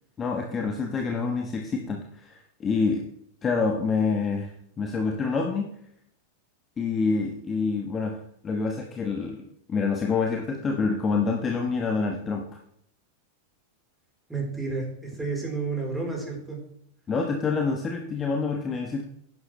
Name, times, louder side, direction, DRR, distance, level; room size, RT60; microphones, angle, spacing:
voice 1, 0.2-3.0 3.4-4.5 4.8-5.7 6.8-8.2 8.4-9.4 9.7-12.4 17.1-19.0, left 4 dB, 20° left, 2 dB, 1.2 m, -27 dB
voice 2, 14.3-16.6, right 3 dB, 5° right, -1 dB, 3.9 m, -31 dB
11.0 x 10.5 x 3.2 m, 0.71 s
figure-of-eight pair, 90°, 0 cm